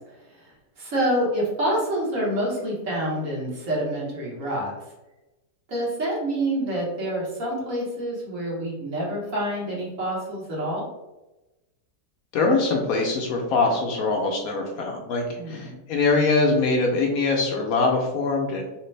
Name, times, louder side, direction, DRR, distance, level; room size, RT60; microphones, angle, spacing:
voice 1, 0.3-4.7 5.7-10.8 15.4-15.8, right 1 dB, 55° right, -4 dB, 1.4 m, -27 dB
voice 2, 12.3-18.7, left 3 dB, 70° left, 1 dB, 1.0 m, -23 dB
3.2 x 3.0 x 3.2 m, 1.0 s
omnidirectional pair, 1.7 m